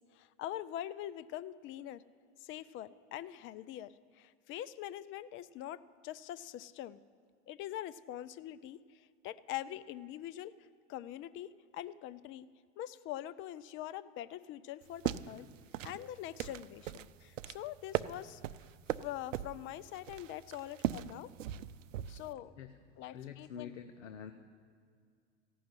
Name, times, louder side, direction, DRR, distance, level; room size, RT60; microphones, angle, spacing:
voice 1, 0.1-2.0 2.4-7.0 7.5-10.5 10.9-12.5 12.8-15.5 15.8-18.4 19.0-21.3 22.1-22.5 23.0-23.8, left 12 dB, 35° left, 17 dB, 0.5 m, -44 dB
sound 1, 14.8-22.3, right 11 dB, 90° right, 0.5 m, -40 dB
voice 2, 23.1-24.3, left 8 dB, 80° left, 8 dB, 0.9 m, -46 dB
15.5 x 6.2 x 9.7 m, 2.2 s
hypercardioid pair, 105°, 37 cm